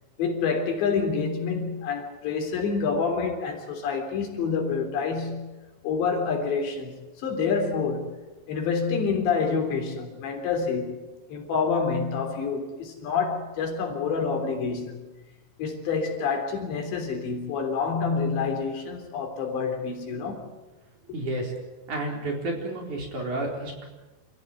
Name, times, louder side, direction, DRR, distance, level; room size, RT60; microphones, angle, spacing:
voice 1, 0.2-5.5 5.8-8.2 8.5-14.9 15.6-20.5, left 5 dB, 75° left, 5.7 m, -27 dB
voice 2, 21.1-21.5 21.9-23.9, right 2 dB, 45° right, 5.3 m, -31 dB
28.0 x 15.5 x 9.3 m
omnidirectional pair, 5.1 m